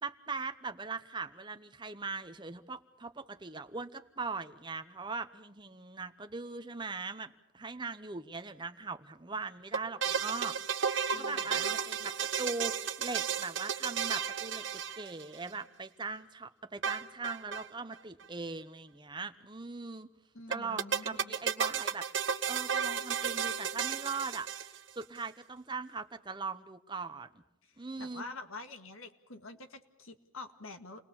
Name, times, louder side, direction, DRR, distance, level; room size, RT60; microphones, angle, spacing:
voice 1, 0.0-10.6 10.8-12.1 12.4-14.6 15.0-20.1 20.5-22.1 22.5-27.3 27.8-28.2, right 4 dB, 20° right, 9 dB, 0.8 m, -40 dB
sound 1, 9.7-15.5 16.8-17.7 17.9-18.0 18.2-18.3 20.5-25.0, right 7 dB, 60° right, 1.0 m, -33 dB
voice 2, 11.1-11.8 20.3-21.3 27.6-31.0, left 3 dB, 75° left, 7 dB, 1.9 m, -47 dB
29.0 x 20.5 x 7.1 m, 0.83 s
head